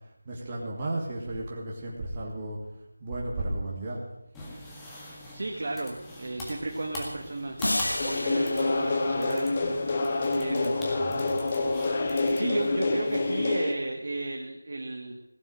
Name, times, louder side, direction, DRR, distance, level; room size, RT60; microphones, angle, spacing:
voice 1, 0.2-2.6 3.0-4.0 10.6-11.4, right 1 dB, 25° right, -3 dB, 2.4 m, -34 dB
sound 1, 4.3-13.5, left 1 dB, 5° left, 1.9 m, -43 dB
voice 2, 5.1-9.6 10.3-10.7 12.0-15.2, right 2 dB, 50° right, 2 dB, 1.5 m, -34 dB
sound 2, 7.6-10.1, left 1 dB, 90° left, 1.3 m, -33 dB
sound 3, 8.0-13.7, left 3 dB, 30° left, 1.4 m, -27 dB
16.5 x 7.2 x 9.0 m, 0.84 s
figure-of-eight pair, 170°, 0 cm